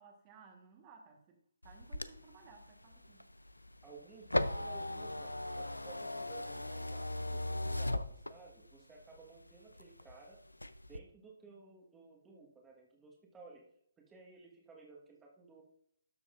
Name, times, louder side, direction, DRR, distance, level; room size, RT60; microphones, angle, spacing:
voice 1, 0.0-3.3, right 5 dB, 25° right, 2 dB, 1.3 m, -59 dB
sound 1, 1.6-8.7 9.2-10.2 10.5-11.0, left 1 dB, 85° left, 0.5 m, -38 dB
voice 2, 3.8-10.4 10.9-13.7 14.0-15.6, right 3 dB, 10° right, 0 dB, 1.4 m, -56 dB
12.5 x 7.0 x 2.5 m, 0.68 s
figure-of-eight pair, 135°, 0 cm